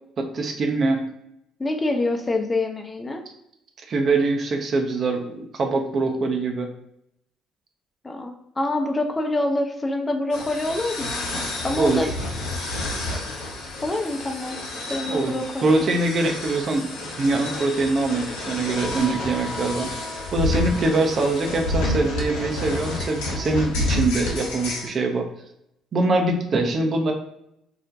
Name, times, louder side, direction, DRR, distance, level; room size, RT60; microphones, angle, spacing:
voice 1, 0.2-1.1 3.9-6.7 11.8-12.1 15.1-15.3 15.6-19.9 20.3-25.3 25.9-27.1, right 2 dB, 45° right, 3 dB, 0.4 m, -23 dB
voice 2, 1.6-3.2 8.0-11.2 11.6-12.1 13.8-14.6 14.9-15.8, left 2 dB, 25° left, 4 dB, 0.4 m, -26 dB
sound 1, 10.3-24.9, left 1 dB, 70° left, 0.6 m, -29 dB
2.3 x 2.1 x 2.6 m, 0.79 s
hypercardioid pair, 50°, 0 cm